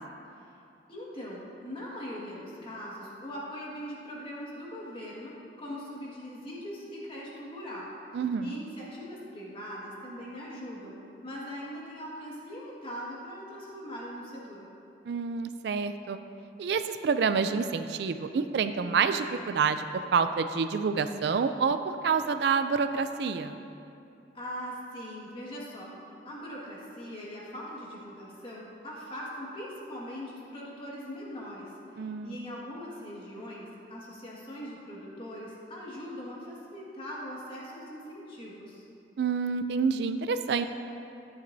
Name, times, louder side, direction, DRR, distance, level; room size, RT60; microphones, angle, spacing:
voice 1, 0.9-7.9 8.4-10.9 11.2-14.7 24.3-38.8, equal, 30° left, -5 dB, 1.7 m, -41 dB
voice 2, 8.1-8.6 15.1-16.2 16.6-19.8 20.1-21.8 22.0-23.5 32.0-32.3 39.2-40.6, right 5 dB, 60° right, 9 dB, 0.3 m, -28 dB
12.5 x 9.6 x 2.7 m, 2.7 s
head